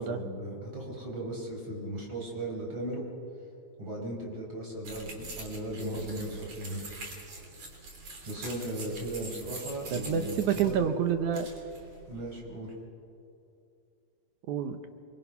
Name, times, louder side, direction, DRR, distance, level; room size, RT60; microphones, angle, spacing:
voice 1, 0.0-3.0 3.8-6.8 8.3-10.8 12.1-12.7, right 1 dB, 35° right, -1 dB, 5.6 m, -37 dB
sound 1, 4.8-12.4, right 2 dB, 55° right, 4.2 m, -44 dB
voice 2, 9.9-11.5 14.5-14.8, right 8 dB, 75° right, 8 dB, 2.4 m, -28 dB
28.0 x 22.5 x 5.7 m, 2.6 s
omnidirectional pair, 3.6 m